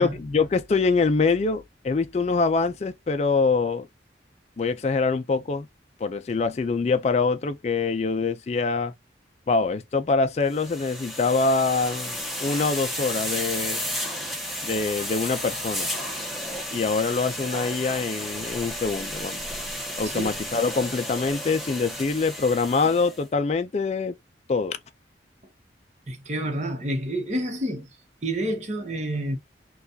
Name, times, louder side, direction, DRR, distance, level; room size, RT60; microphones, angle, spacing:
voice 1, 0.0-3.9 4.6-5.7 6.0-8.9 9.5-12.1 12.4-13.8 14.6-15.9 16.7-19.5 20.0-24.2 24.5-24.8, left 4 dB, 35° left, 0.3 m, -24 dB
sound 1, 10.5-23.2, equal, ahead, 0.9 m, -33 dB
voice 2, 20.0-20.4 26.1-27.9 28.2-29.4, right 1 dB, 40° right, 0.9 m, -29 dB
4.0 x 2.3 x 2.6 m
head